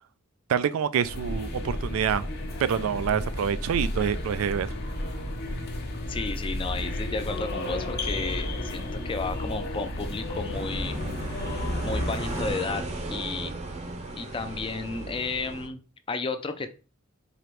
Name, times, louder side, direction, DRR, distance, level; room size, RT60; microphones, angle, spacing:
voice 1, 0.5-2.3 2.6-4.7, right 8 dB, 90° right, 0.3 m, -26 dB
sound 1, 1.0-12.5, left 1 dB, 50° left, 0.8 m, -32 dB
voice 2, 6.1-11.0 11.8-13.5 14.1-16.7, left 3 dB, 25° left, 0.4 m, -33 dB
sound 2, 10.5-15.7, right 2 dB, 35° right, 0.6 m, -35 dB
4.9 x 2.9 x 3.1 m
head